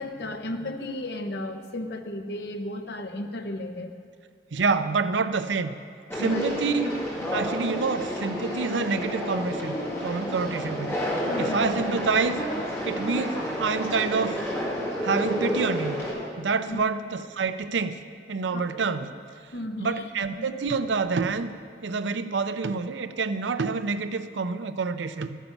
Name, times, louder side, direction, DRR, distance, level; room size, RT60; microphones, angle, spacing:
voice 1, 0.0-3.9 6.1-6.5 11.2-11.7 16.7-16.8 18.5-19.1 19.5-20.0 20.4-20.5, left 1 dB, 70° left, 6 dB, 0.9 m, -34 dB
voice 2, 4.5-5.7 6.1-7.0 7.3-9.7 10.0-11.0 11.4-12.4 12.9-14.4 15.0-16.1 16.4-18.0 18.3-19.1 19.8-21.5 21.8-25.4, right 4 dB, 90° right, 11 dB, 0.6 m, -27 dB
Conversation, 6.1-16.1, equal, 15° left, 2.1 m, -30 dB
13.0 x 9.2 x 5.9 m, 2.3 s
head